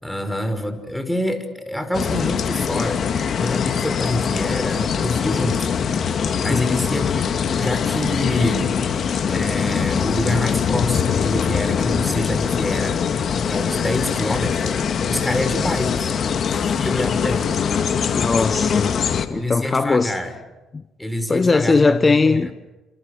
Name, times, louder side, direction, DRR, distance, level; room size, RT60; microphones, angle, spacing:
voice 1, 0.0-3.0 3.3-5.7 6.0-7.2 7.6-8.8 9.3-13.0 13.5-14.8 15.1-16.2 16.5-17.5 19.3-20.4 21.0-22.5, left 1 dB, 5° left, 5.6 m, -26 dB
sound 1, 1.9-19.3, left 7 dB, 50° left, 2.4 m, -22 dB
voice 2, 6.5-6.9 18.1-19.0 19.3-20.2 20.7-20.8 21.3-22.5, left 4 dB, 30° left, 1.2 m, -19 dB
29.5 x 28.0 x 6.7 m
hypercardioid pair, 50°, 0 cm